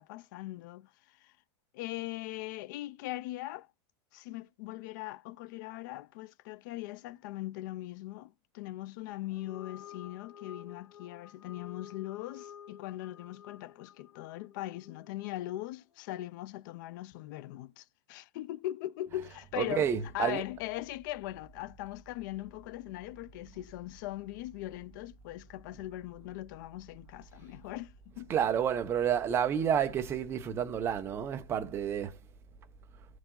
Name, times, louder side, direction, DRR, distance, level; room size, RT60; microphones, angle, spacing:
voice 1, 0.0-1.3 1.7-3.7 4.1-28.3, left 16 dB, 40° left, 0.4 m, -40 dB
sound 1, 9.2-15.8, left 9 dB, 70° left, 2.5 m, -52 dB
voice 2, 19.5-20.4 28.3-32.2, right 8 dB, 15° right, 0.6 m, -30 dB
13.5 x 4.8 x 3.7 m
supercardioid pair, 170°, 15 cm